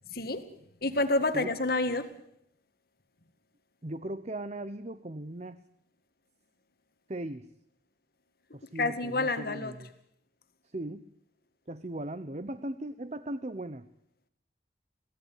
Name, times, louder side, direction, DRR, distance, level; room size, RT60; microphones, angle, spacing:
voice 1, 0.1-0.4 0.8-2.1 8.8-9.7, left 2 dB, 50° left, 9 dB, 1.9 m, -28 dB
voice 2, 3.8-5.6 7.1-7.5 8.5-9.9 10.7-11.1 11.7-13.9, right 1 dB, 35° right, 12 dB, 0.8 m, -38 dB
23.0 x 17.0 x 9.4 m, 0.75 s
head